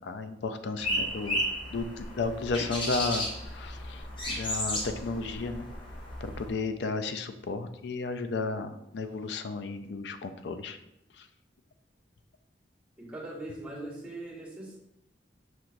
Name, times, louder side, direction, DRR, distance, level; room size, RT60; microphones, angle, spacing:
voice 1, 0.0-1.4 1.7-3.3 3.5-5.7 6.2-10.8 11.2-11.3, left 3 dB, 65° left, 8 dB, 0.4 m, -33 dB
sound 1, 0.8-6.5, left 1 dB, 30° left, 0.8 m, -34 dB
voice 2, 13.0-14.8, right 2 dB, 10° right, -9 dB, 1.5 m, -40 dB
5.9 x 2.9 x 2.6 m, 0.83 s
head